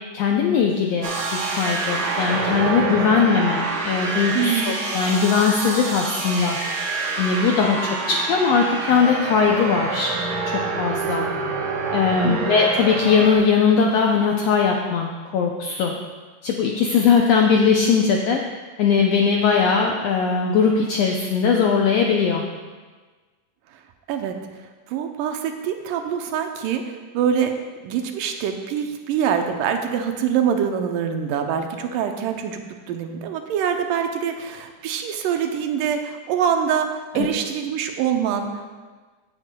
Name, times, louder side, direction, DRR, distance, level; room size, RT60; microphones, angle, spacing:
voice 1, 0.1-6.6 7.2-10.1 10.5-11.3 11.9-15.9 16.4-18.4 18.8-22.4 37.1-37.3, left 6 dB, 80° left, 1 dB, 1.4 m, -20 dB
sound 1, 1.0-13.3, right 4 dB, 60° right, 2.6 m, -27 dB
voice 2, 4.3-4.8 12.2-12.6 24.1-24.3 24.9-27.5 27.8-32.6 32.9-38.8, right 8 dB, 90° right, 5 dB, 2.4 m, -24 dB
16.0 x 8.1 x 2.3 m, 1.4 s
omnidirectional pair, 3.7 m